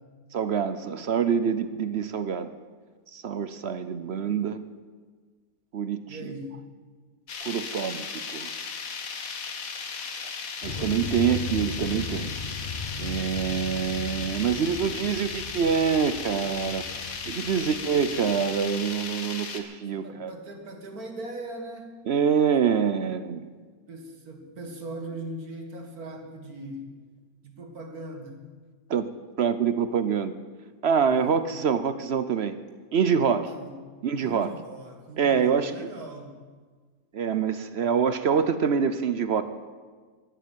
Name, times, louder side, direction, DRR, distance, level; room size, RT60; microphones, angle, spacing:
voice 1, 0.3-2.5 3.1-4.6 5.7-6.0 7.4-8.5 10.6-12.3 13.0-16.8 17.3-20.3 22.1-23.5 28.9-29.1 29.4-30.4 30.8-32.6 32.9-33.5 34.0-34.5 35.2-35.9 37.1-39.4, right 7 dB, 55° right, 12 dB, 0.8 m, -25 dB
voice 2, 6.1-6.5 10.7-11.1 17.5-17.7 19.9-22.0 23.9-26.9 27.4-28.4 31.0-31.3 33.5-33.7 34.2-36.4, right 1 dB, 75° right, 3 dB, 2.4 m, -40 dB
sound 1, 7.3-19.6, left 5 dB, 65° left, 1.6 m, -36 dB
sound 2, 10.6-19.1, left 3 dB, 40° left, 0.8 m, -38 dB
12.0 x 11.5 x 9.1 m, 1.5 s
omnidirectional pair, 1.6 m